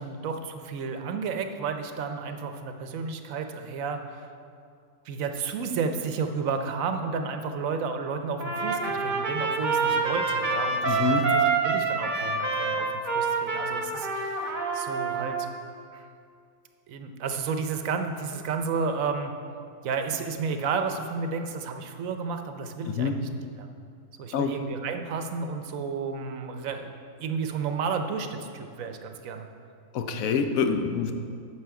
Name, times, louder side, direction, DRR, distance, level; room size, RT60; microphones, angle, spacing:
voice 1, 0.0-4.3 5.0-12.9 13.1-15.4 15.9-16.0 16.9-19.3 19.8-23.3 23.6-23.7 24.2-29.5, right 5 dB, 75° right, 6 dB, 1.1 m, -32 dB
Trumpet, 8.4-15.5, right 4 dB, 40° right, 1.0 m, -27 dB
voice 2, 10.9-11.2 22.9-23.1 24.3-24.5 29.9-31.1, left 6 dB, 80° left, 7 dB, 1.1 m, -26 dB
9.5 x 6.3 x 4.7 m, 2.3 s
omnidirectional pair, 1.4 m